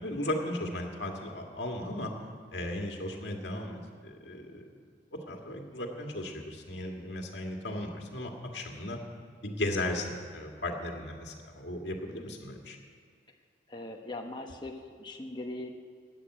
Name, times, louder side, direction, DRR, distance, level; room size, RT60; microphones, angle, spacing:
voice 1, 0.0-2.1 2.5-4.6 5.1-9.0 9.4-12.8, left 1 dB, 70° left, 1 dB, 2.0 m, -36 dB
voice 2, 13.7-15.7, left 2 dB, 25° left, 2 dB, 1.1 m, -40 dB
13.0 x 8.9 x 8.7 m, 2.1 s
head